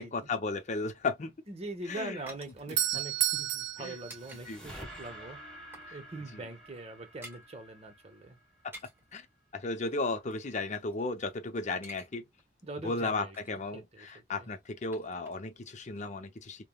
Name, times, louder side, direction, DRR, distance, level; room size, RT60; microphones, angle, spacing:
voice 1, 0.0-1.3 1.9-2.2 2.7-2.8 3.8-4.0 4.5-4.7 5.9-6.0 6.3-6.4 9.1-9.3 9.5-12.2 12.8-16.7, left 3 dB, 40° left, 0.6 m, -35 dB
sound 1, 1.4-4.4 4.7-4.9 5.3-6.0 6.2-6.4 6.6-7.5 8.5-9.1 9.9-11.3 11.6-12.1 12.4-12.5 12.9-13.7 14.4-15.7 15.9-16.0, right 1 dB, 15° right, 1.4 m, -53 dB
voice 2, 1.5-5.4 5.9-8.4 12.6-13.3 13.7-13.8 14.4-14.5, right 2 dB, 35° right, 0.9 m, -42 dB
Doorbell, 2.3-5.2, right 13 dB, 65° right, 0.4 m, -33 dB
sound 2, 3.5-8.8, equal, 5° left, 1.3 m, -50 dB
3.4 x 2.2 x 2.3 m
head